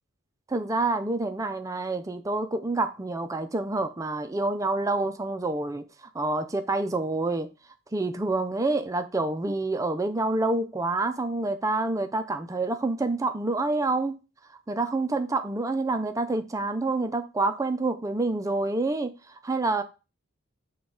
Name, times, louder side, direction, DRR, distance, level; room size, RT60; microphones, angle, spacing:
voice 1, 0.5-7.5 7.9-14.2 14.7-19.1 19.4-19.8, right 2 dB, 15° right, 0.3 m, -27 dB
6.0 x 2.3 x 3.7 m
head